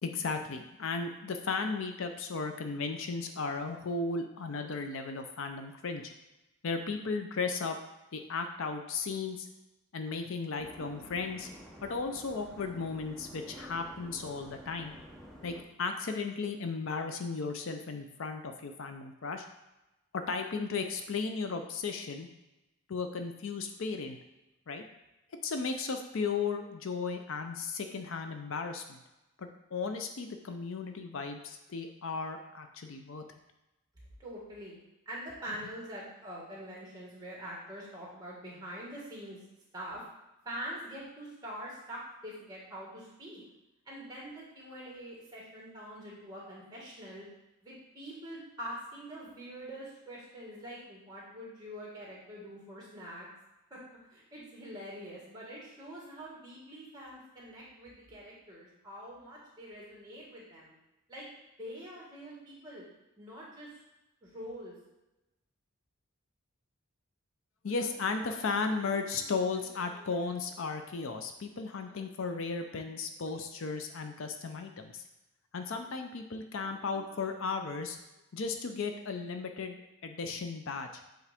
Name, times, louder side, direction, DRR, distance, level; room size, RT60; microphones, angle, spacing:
voice 1, 0.0-6.1 6.6-7.8 8.1-9.5 9.9-11.5 11.8-14.9 15.4-19.4 20.1-22.3 22.9-24.2 24.7-24.8 25.4-29.0 29.4-33.2 67.6-75.0 75.5-78.0 78.3-81.0, left 4 dB, 65° left, 6 dB, 0.5 m, -35 dB
sound 1, 10.6-15.6, equal, ahead, 0.6 m, -50 dB
voice 2, 34.2-34.8 35.0-39.4 39.7-40.0 40.4-43.4 43.8-47.2 47.6-53.3 53.7-53.8 54.1-60.7 61.1-61.2 61.6-62.8 63.2-63.8 64.2-64.7, equal, 15° right, -4 dB, 1.7 m, -44 dB
7.3 x 3.8 x 3.5 m, 0.98 s
head